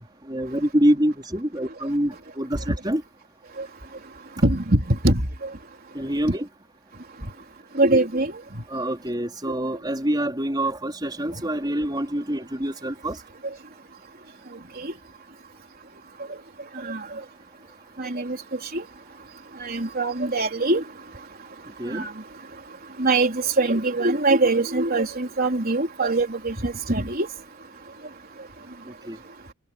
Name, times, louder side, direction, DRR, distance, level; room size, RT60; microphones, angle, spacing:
voice 1, 0.0-3.0 5.9-6.5 8.7-13.2 21.8-22.0 29.1-29.2, right 1 dB, 20° right, 4.3 m, -26 dB
voice 2, 4.4-5.2 7.8-8.3 14.8-14.9 16.8-17.0 18.0-18.4 18.7-18.8 19.6-20.8 21.9-22.1 23.0-27.3, right 2 dB, 45° right, 3.9 m, -22 dB
head